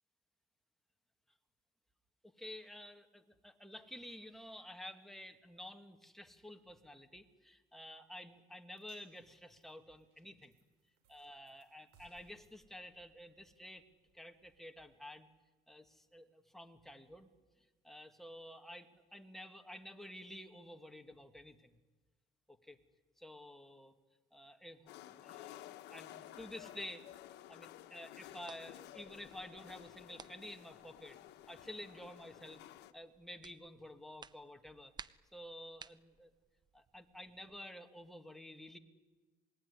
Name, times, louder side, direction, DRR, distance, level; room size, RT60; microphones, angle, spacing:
voice 1, 2.2-10.5 11.1-13.9 14.1-15.3 15.7-17.3 17.6-21.8 22.5-22.8 23.2-23.9 24.3-27.1 27.5-31.2 31.5-32.7 32.9-34.9 35.3-36.3 36.7-38.8, left 1 dB, ahead, 6 dB, 1.9 m, -51 dB
sound 1, 8.8-15.1, right 5 dB, 80° right, 6.9 m, -72 dB
sound 2, 24.9-32.9, left 13 dB, 85° left, 1.2 m, -54 dB
sound 3, 27.2-37.6, right 5 dB, 25° right, 0.7 m, -60 dB
27.5 x 20.5 x 9.8 m, 1.3 s
cardioid pair, 110°, 17 cm